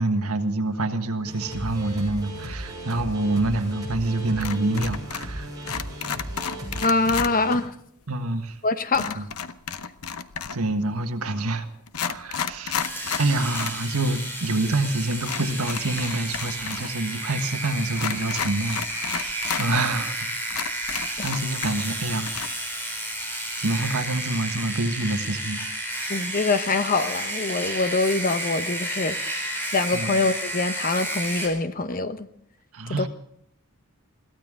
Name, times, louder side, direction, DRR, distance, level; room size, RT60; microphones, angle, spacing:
voice 1, 0.0-5.5 8.1-8.6 9.1-9.3 10.5-11.7 12.1-12.8 13.2-20.2 21.2-22.6 23.6-25.7 29.9-30.2 32.7-33.1, right 2 dB, 80° right, 6 dB, 1.5 m, -27 dB
sound 1, 1.3-7.6, right 1 dB, 20° right, 7.2 m, -36 dB
sound 2, 4.4-5.4 5.6-7.3 8.9-10.7 11.4-11.5 11.9-13.8 14.1-14.2 15.2-16.9 17.1-17.2 17.9-19.7 20.1-20.2 20.5-22.0 22.3-22.5, left 7 dB, 80° left, 0.8 m, -32 dB
voice 2, 6.8-7.7 8.6-9.3 21.2-21.3 26.1-29.4 29.7-32.3 32.9-33.1, left 3 dB, 40° left, 11 dB, 0.9 m, -24 dB
sound 3, 12.8-31.5, right 1 dB, 10° left, 4.8 m, -31 dB
22.0 x 15.5 x 3.7 m, 0.72 s
head